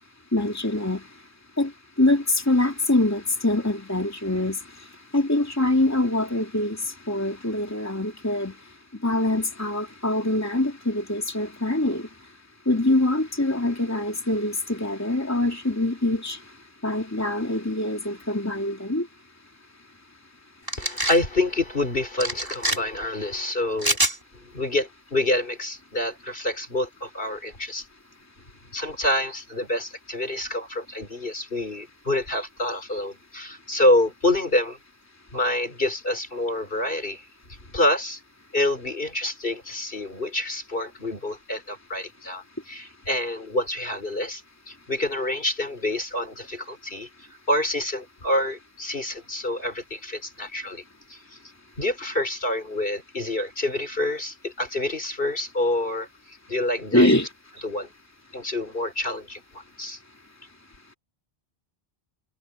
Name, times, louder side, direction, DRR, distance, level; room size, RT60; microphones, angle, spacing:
voice 1, 0.3-1.0 1.6-1.7 2.0-4.6 5.1-8.5 9.0-12.1 12.7-16.4 16.8-19.1 56.9-57.3, left 1 dB, 15° left, 2.9 m, -24 dB
sound 1, 20.7-21.2 22.2-22.8 23.8-24.2, right 1 dB, 20° right, 4.1 m, -24 dB
voice 2, 20.8-24.0 24.3-27.9 28.7-34.8 35.3-37.3 37.7-38.2 38.5-47.1 47.5-50.8 51.1-51.4 51.8-57.1 57.6-57.9 58.3-60.0, left 1 dB, 60° left, 4.7 m, -27 dB
omnidirectional pair, 1.0 m